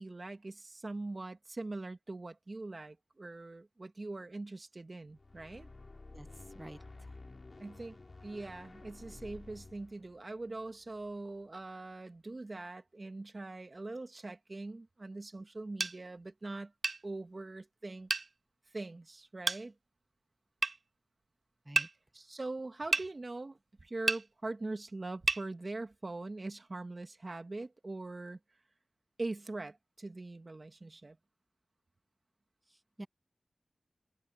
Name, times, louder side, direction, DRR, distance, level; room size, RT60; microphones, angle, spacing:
voice 1, 0.0-5.7 7.6-16.7 17.0-18.1 18.7-19.7 22.1-28.4 29.2-31.2, right 2 dB, 45° right, 2.1 m, -42 dB
sound 1, 5.1-11.4, left 3 dB, 50° left, 3.1 m, -52 dB
voice 2, 6.5-7.1 21.6-21.9 32.7-33.1, right 1 dB, 20° right, 1.1 m, -49 dB
sound 2, 15.8-16.0 16.8-17.0 18.1-18.3 19.5-19.6 20.6-20.8 21.8-21.9 22.9-23.1 24.1-24.2 25.3-25.4, right 3 dB, 65° right, 0.6 m, -30 dB
open air
wide cardioid pair, 80°, 0 cm